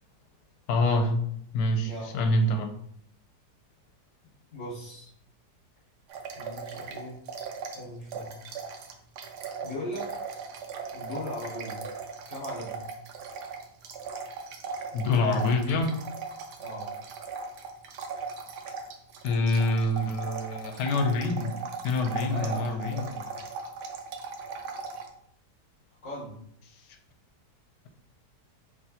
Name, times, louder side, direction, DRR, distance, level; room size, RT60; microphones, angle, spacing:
voice 1, 0.7-1.2 1.5-2.7 14.9-16.0 19.2-21.5 21.8-23.1, left 2 dB, 85° left, 5 dB, 1.3 m, -26 dB
voice 2, 1.8-2.4 4.5-5.1 6.3-7.2 7.7-8.4 9.6-10.1 10.9-11.9 12.3-12.9 16.6-16.9 22.3-23.3 26.0-26.4, left 1 dB, 45° left, -9 dB, 1.7 m, -39 dB
sound 1, 6.1-7.8 8.1-25.1, right 5 dB, 80° right, 1.2 m, -38 dB
4.7 x 3.3 x 2.9 m, 0.68 s
omnidirectional pair, 1.8 m